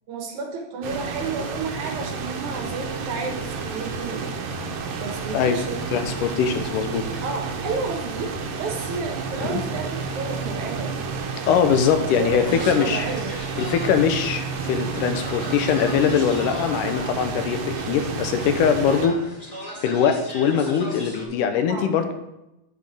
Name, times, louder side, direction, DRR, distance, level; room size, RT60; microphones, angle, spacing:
voice 1, 0.1-4.3 5.0-5.8 7.2-8.3 8.6-11.0 12.0-13.4 18.9-19.2 21.6-22.1, right 4 dB, 65° right, 2 dB, 2.4 m, -31 dB
sound 1, 0.8-19.1, right 4 dB, 85° right, 2.6 m, -31 dB
voice 2, 5.9-7.2 9.4-9.6 11.5-13.0 13.6-19.2 19.8-22.1, left 7 dB, 85° left, 7 dB, 2.3 m, -22 dB
sound 2, 12.4-21.3, equal, 15° left, 2.1 m, -38 dB
8.5 x 8.4 x 3.6 m, 0.91 s
omnidirectional pair, 3.8 m